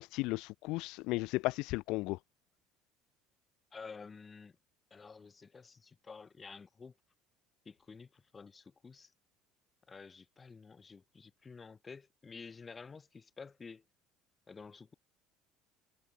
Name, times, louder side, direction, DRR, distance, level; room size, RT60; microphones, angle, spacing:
voice 1, 0.0-2.2, left 22 dB, 70° left, 0.6 m, -35 dB
voice 2, 3.7-4.6 4.9-6.9 7.7-9.1 9.9-13.8 14.5-14.9, left 5 dB, 25° left, 5.2 m, -51 dB
supercardioid pair, 110°, 0 cm